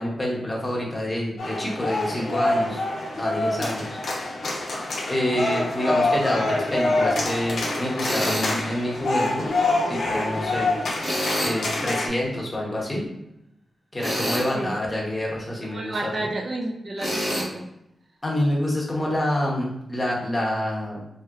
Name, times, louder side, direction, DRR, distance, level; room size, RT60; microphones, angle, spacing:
voice 1, 0.0-2.8 3.2-4.0 5.1-9.5 9.9-10.7 11.4-13.1 13.9-16.0 18.2-21.0, left 1 dB, 15° left, -4 dB, 0.7 m, -27 dB
sound 1, 1.4-12.1, left 2 dB, 75° left, 0.7 m, -26 dB
Tools, 8.0-8.5 11.0-11.6 14.0-14.5 17.0-17.5, equal, 20° right, 1.3 m, -26 dB
voice 2, 15.6-17.7, right 2 dB, 45° right, 0 dB, 0.3 m, -31 dB
3.1 x 2.7 x 2.3 m, 0.84 s
wide cardioid pair, 175°, 0 cm